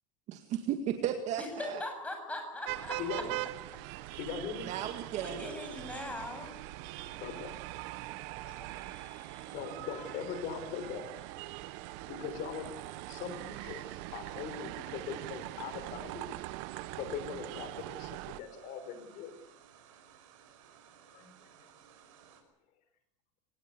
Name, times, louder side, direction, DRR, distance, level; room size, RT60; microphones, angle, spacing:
voice 1, 0.3-1.8 4.6-5.4, right 10 dB, 45° right, 6 dB, 2.1 m, -35 dB
voice 2, 1.4-3.2 4.0-4.2 5.1-6.5, left 1 dB, 10° left, 4 dB, 7.6 m, -40 dB
sound 1, 2.6-18.4, right 18 dB, 60° right, 1.1 m, -42 dB
voice 3, 3.0-3.4 4.1-4.7 6.8-8.2 8.4-11.5 11.9-16.3 16.8-19.3 21.1-21.3, left 7 dB, 50° left, 10 dB, 5.5 m, -42 dB
sound 2, 5.1-22.4, right 8 dB, 85° right, 5.7 m, -59 dB
24.0 x 19.0 x 8.4 m, 0.81 s
supercardioid pair, 135°, 17 cm